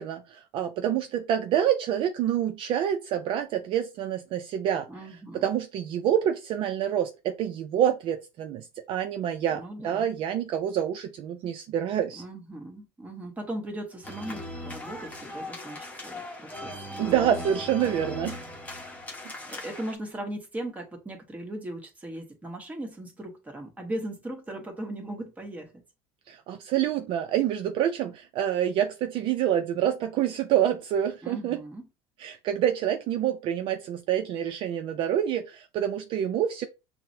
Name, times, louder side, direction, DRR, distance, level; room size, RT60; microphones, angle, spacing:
voice 1, 0.0-4.9 5.3-12.2 17.0-18.4 26.3-31.6 32.2-36.7, right 10 dB, 50° right, 0.4 m, -27 dB
voice 2, 4.9-5.5 9.5-10.1 12.2-17.4 17.8-18.0 19.5-25.8 31.2-31.9, right 1 dB, 15° right, 1.2 m, -38 dB
sound 1, 14.0-19.9, left 1 dB, 15° left, 1.0 m, -38 dB
5.7 x 2.0 x 2.7 m
supercardioid pair, 120°, 12 cm